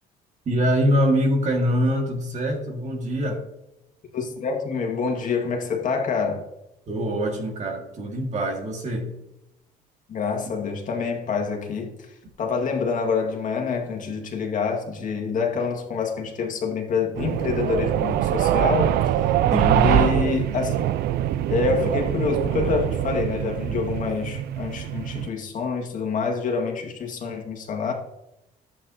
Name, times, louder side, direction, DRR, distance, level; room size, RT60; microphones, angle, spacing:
voice 1, 0.5-3.4 6.9-9.1 19.5-19.9, equal, 45° right, 2 dB, 1.9 m, -24 dB
voice 2, 4.1-6.4 10.1-12.1 12.4-18.9 19.8-20.7 21.5-27.9, left 5 dB, 50° left, 1 dB, 1.9 m, -26 dB
sound 1, 17.2-25.3, right 12 dB, 70° right, 0.4 m, -23 dB
11.0 x 8.5 x 2.8 m, 0.88 s
cardioid pair, 110°, 17 cm